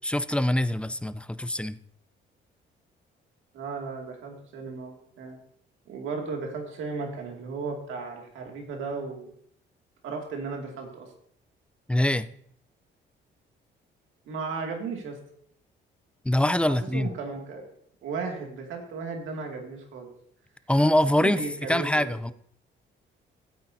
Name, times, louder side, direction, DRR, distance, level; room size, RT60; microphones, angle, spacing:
voice 1, 0.0-1.8 11.9-12.3 16.2-17.1 20.7-21.4 21.7-22.3, left 1 dB, 5° left, 0.4 m, -24 dB
voice 2, 3.5-5.4 5.9-9.3 10.0-11.1 14.3-15.2 16.8-17.6 18.0-20.1 21.2-22.3, right 4 dB, 85° right, 2.4 m, -35 dB
16.0 x 8.6 x 2.8 m
cardioid pair, 90°, 20 cm